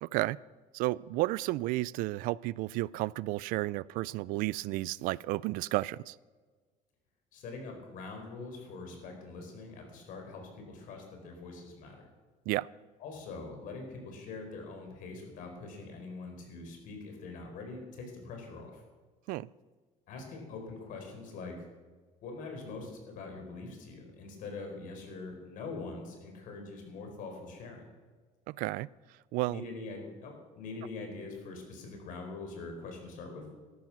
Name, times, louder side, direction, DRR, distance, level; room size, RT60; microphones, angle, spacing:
voice 1, 0.0-0.4 0.7-6.2 12.5-12.7 19.3-19.5 28.5-28.9 29.3-29.6, right 19 dB, 80° right, 22 dB, 0.4 m, -32 dB
voice 2, 7.3-12.0 13.0-18.8 20.1-21.6 22.2-27.8 29.5-33.4, left 3 dB, 70° left, 3 dB, 4.3 m, -43 dB
13.5 x 12.0 x 5.9 m, 1.4 s
cardioid pair, 100°, 14 cm